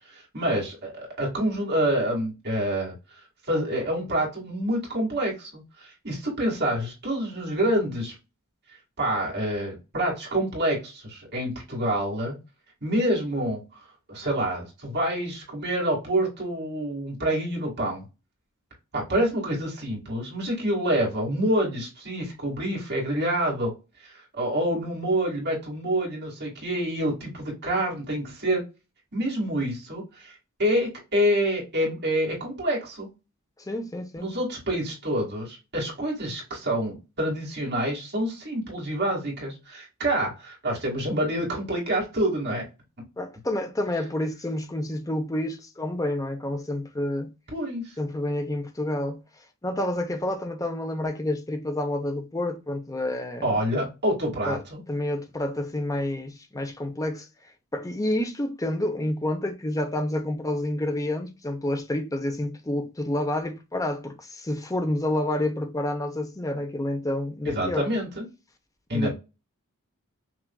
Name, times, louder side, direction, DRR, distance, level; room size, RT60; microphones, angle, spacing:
voice 1, 0.1-2.9 3.5-8.2 9.0-12.4 12.8-13.6 14.1-18.0 18.9-23.7 24.0-28.6 29.1-30.3 30.6-33.1 34.2-42.6 47.5-47.9 53.4-54.8 67.4-68.2 68.9-69.1, right 1 dB, 50° right, 2.3 m, -27 dB
voice 2, 33.6-34.3 43.2-47.3 48.0-49.2 49.6-53.6 54.5-54.6 54.9-57.3 57.7-67.9 68.9-69.1, left 1 dB, 15° left, 0.7 m, -29 dB
5.8 x 2.6 x 2.3 m
head